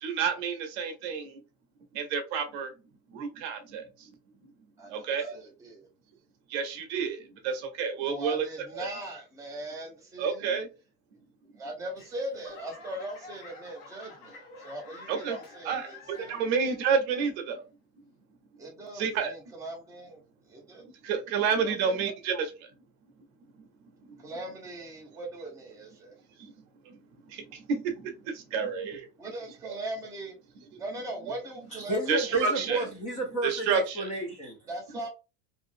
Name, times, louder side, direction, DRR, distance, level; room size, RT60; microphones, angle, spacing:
voice 1, 0.0-1.4 1.9-2.7 3.1-3.8 4.9-5.3 6.5-8.4 8.8-8.9 10.2-10.7 15.1-15.4 15.6-17.6 19.0-19.3 21.0-22.5 26.9-27.0 27.3-29.1 32.1-32.8 33.4-34.1, right 6 dB, 55° right, 0.7 m, -29 dB
voice 2, 4.8-5.9 8.0-10.6 11.5-16.4 18.6-20.9 21.6-22.0 24.2-26.1 29.2-30.4 30.8-32.4 34.7-35.1, right 1 dB, 10° right, 0.9 m, -40 dB
Laughter / Clapping / Crowd, 12.0-16.7 17.1-17.6 18.2-18.3, left 3 dB, 70° left, 1.1 m, -49 dB
voice 3, 31.7-34.6, right 1 dB, 20° left, 0.6 m, -32 dB
2.5 x 2.5 x 2.5 m
supercardioid pair, 155°, 38 cm